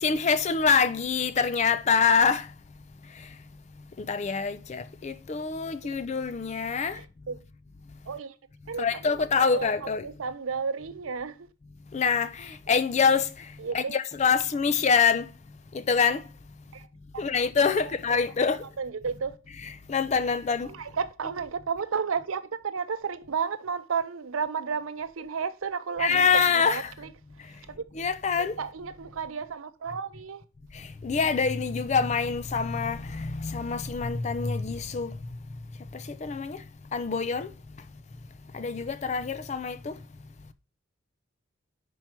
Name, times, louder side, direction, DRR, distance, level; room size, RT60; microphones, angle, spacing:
voice 1, 0.0-2.5 4.1-7.0 8.8-10.1 11.9-12.3 12.7-13.3 13.7-15.3 15.9-16.2 17.2-18.6 19.6-20.7 26.0-26.9 28.0-28.5 31.0-35.1 36.2-36.6 36.9-37.5 38.5-39.9, left 5 dB, 35° left, 0.4 m, -25 dB
voice 2, 6.9-7.4 8.1-8.3 8.7-11.5 13.6-14.0 16.7-16.9 17.1-17.2 17.7-18.2 18.8-19.4 20.6-27.1 27.5-27.8 28.4-30.4, right 6 dB, 90° right, 0.6 m, -33 dB
5.7 x 4.6 x 4.3 m
head